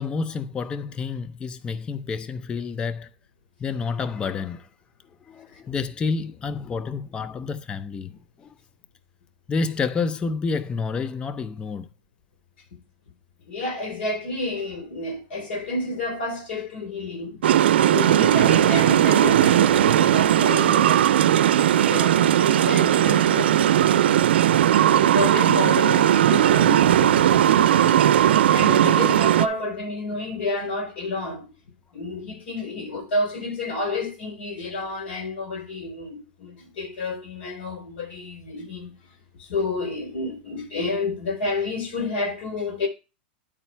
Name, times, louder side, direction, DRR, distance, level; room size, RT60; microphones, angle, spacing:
voice 1, 0.0-3.1 3.6-4.7 5.3-8.5 9.5-11.9, left 4 dB, 15° left, 0.5 m, -29 dB
voice 2, 13.4-17.4 17.8-21.1 21.7-24.2 24.8-28.0 28.5-31.5 31.9-38.9 39.4-42.9, left 3 dB, 70° left, 4.5 m, -30 dB
sound 1, 17.4-29.5, right 11 dB, 85° right, 0.5 m, -18 dB
10.0 x 4.1 x 4.4 m
supercardioid pair, 140°, 6 cm